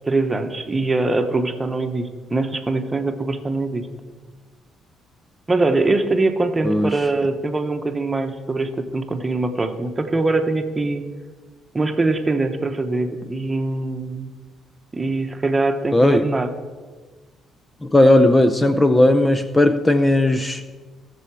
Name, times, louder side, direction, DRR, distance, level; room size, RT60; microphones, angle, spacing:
voice 1, 0.1-3.9 5.5-11.0 11.7-14.3 14.9-16.5, right 2 dB, 25° right, 7 dB, 1.2 m, -22 dB
voice 2, 6.6-7.1 15.9-16.3 17.8-20.6, left 1 dB, 15° left, 10 dB, 0.6 m, -16 dB
18.0 x 7.0 x 4.8 m, 1.4 s
cardioid pair, 75°, 0 cm